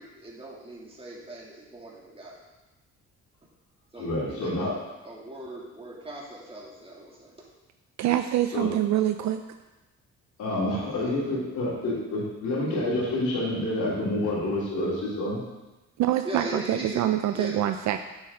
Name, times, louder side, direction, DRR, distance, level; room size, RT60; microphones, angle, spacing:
voice 1, 0.0-2.4 3.9-4.8 5.0-7.3 10.7-11.1 16.2-17.6, right 1 dB, 20° right, -4 dB, 2.5 m, -39 dB
voice 2, 4.0-4.7 8.5-8.7 10.4-15.4, left 1 dB, 75° left, -8 dB, 3.3 m, -28 dB
voice 3, 8.0-9.4 10.6-10.8 16.0-18.0, right 12 dB, 65° right, 8 dB, 0.5 m, -25 dB
8.6 x 7.5 x 3.7 m, 1.1 s
cardioid pair, 90°, 30 cm